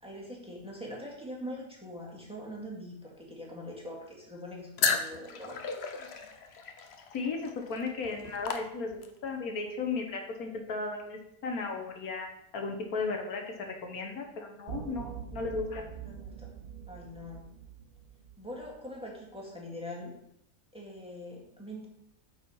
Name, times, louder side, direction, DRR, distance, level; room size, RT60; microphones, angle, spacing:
voice 1, 0.0-5.6 16.1-16.5 16.9-17.5 18.4-20.1 20.7-21.9, left 1 dB, 5° right, -3 dB, 1.9 m, -43 dB
sound 1, 4.8-9.3, left 5 dB, 50° left, 0.9 m, -34 dB
voice 2, 7.1-12.3 12.5-15.9, left 4 dB, 75° left, 3 dB, 1.6 m, -35 dB
sound 2, 14.7-19.0, right 8 dB, 50° right, 0.6 m, -44 dB
8.7 x 4.7 x 5.5 m, 0.79 s
omnidirectional pair, 1.6 m